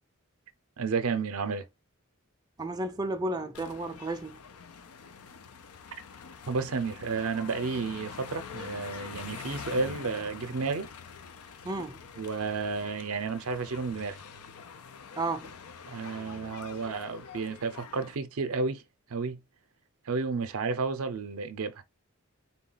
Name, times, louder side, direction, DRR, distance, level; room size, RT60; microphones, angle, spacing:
voice 1, 0.8-1.7 6.5-10.9 12.2-14.2 15.9-18.8 19.1-19.4 20.1-21.8, right 4 dB, 70° right, 0.6 m, -32 dB
voice 2, 2.6-4.4 11.6-12.0 15.2-15.5, right 2 dB, 20° right, 0.4 m, -33 dB
sound 1, 3.5-18.2, left 6 dB, 85° left, 0.6 m, -45 dB
4.0 x 2.3 x 3.9 m
head